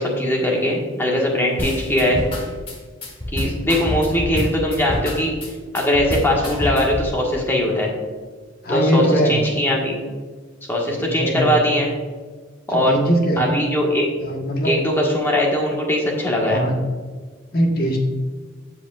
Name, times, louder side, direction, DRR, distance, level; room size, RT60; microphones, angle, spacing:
voice 1, 0.0-2.2 3.3-5.3 5.7-7.9 8.7-10.0 10.7-11.9 12.7-13.0 13.4-14.1 14.6-16.6, left 1 dB, 10° left, -2 dB, 1.5 m, -20 dB
sound 1, 1.6-7.1, left 1 dB, 25° left, 1.3 m, -27 dB
voice 2, 8.6-9.5 11.0-11.6 12.7-13.6 14.2-14.7 16.5-16.8 17.5-18.0, equal, 50° left, 1 dB, 1.4 m, -21 dB
15.0 x 5.0 x 2.4 m, 1.5 s
head